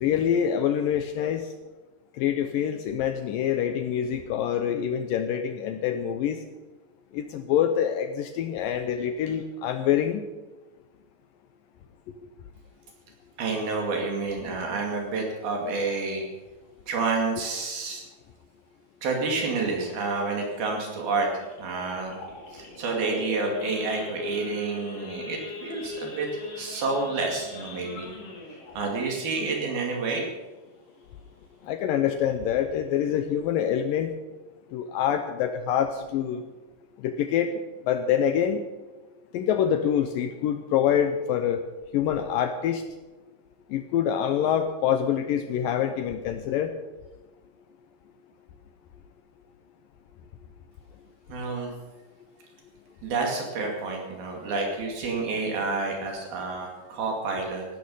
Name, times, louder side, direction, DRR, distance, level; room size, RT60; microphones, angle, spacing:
voice 1, 0.0-1.5 2.2-6.4 7.1-10.2 31.7-34.1 34.7-36.4 37.0-37.5 37.9-38.6 39.3-41.6 41.9-42.8 43.7-46.7, left 9 dB, 75° left, 8 dB, 2.1 m, -25 dB
voice 2, 13.4-16.3 16.9-18.0 19.0-22.2 22.5-28.1 28.8-30.3 51.3-51.7 53.0-57.7, right 3 dB, 70° right, 1 dB, 4.2 m, -29 dB
Idling / Accelerating revving vroom / Sawing, 19.5-30.6 31.0-31.2 31.4-31.5 32.0-32.3 32.7-32.8 33.0-33.4, left 2 dB, 40° left, 3.2 m, -40 dB
16.0 x 13.0 x 5.5 m, 1.2 s
omnidirectional pair, 4.6 m